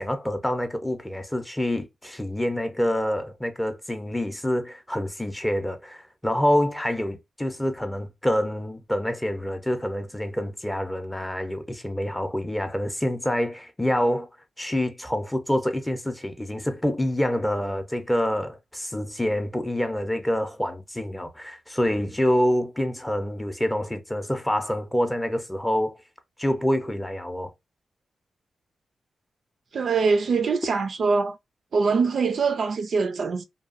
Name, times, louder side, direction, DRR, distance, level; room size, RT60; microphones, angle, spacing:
voice 1, 0.0-14.3 14.6-26.0 26.4-27.5, left 1 dB, 10° left, 0.5 m, -26 dB
voice 2, 29.7-31.4 31.7-33.4, right 4 dB, 60° right, 0.4 m, -23 dB
2.7 x 2.2 x 2.4 m
wide cardioid pair, 120°, 0 cm